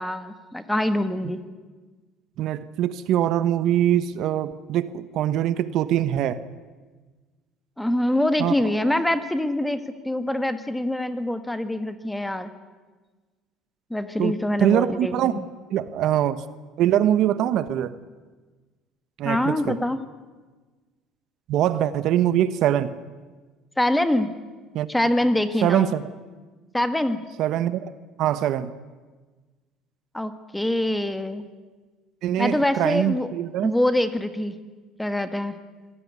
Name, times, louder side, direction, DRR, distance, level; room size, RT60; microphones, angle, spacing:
voice 1, 0.0-1.4 7.8-12.5 13.9-15.5 19.2-20.0 23.8-24.3 24.9-25.9 26.7-27.2 30.1-31.4 32.4-33.3 33.6-34.6 35.0-35.6, left 1 dB, 5° left, 10 dB, 1.5 m, -24 dB
voice 2, 2.4-6.4 8.4-8.5 14.2-15.4 15.7-16.4 16.8-18.0 19.2-19.8 21.5-22.9 24.7-24.9 25.6-26.1 27.4-27.9 28.2-28.7 32.2-33.7, right 11 dB, 60° right, 14 dB, 1.1 m, -23 dB
25.5 x 17.0 x 9.6 m, 1.3 s
cardioid pair, 135°, 0 cm